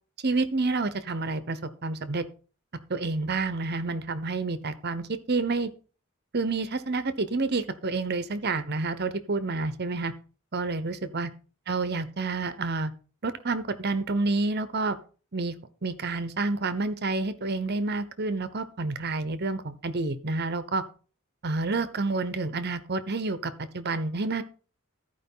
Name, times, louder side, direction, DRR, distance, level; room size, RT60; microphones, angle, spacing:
voice 1, 0.2-2.2 2.9-5.7 6.3-10.1 10.5-11.3 11.7-12.9 13.2-15.0 15.3-15.5 15.8-20.8 21.4-24.4, right 3 dB, 50° right, 12 dB, 1.0 m, -29 dB
14.0 x 5.0 x 5.6 m, 0.37 s
head